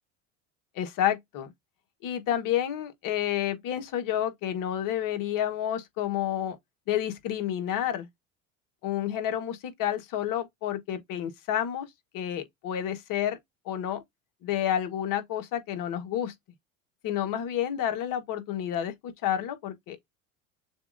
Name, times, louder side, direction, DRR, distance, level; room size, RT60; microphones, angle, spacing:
voice 1, 0.7-1.5 2.0-6.6 6.9-8.1 8.8-11.9 12.1-13.4 13.6-14.0 14.4-16.3 17.0-20.0, left 10 dB, 55° left, 1.3 m, -30 dB
6.8 x 2.4 x 2.5 m
hypercardioid pair, 90°, 40 cm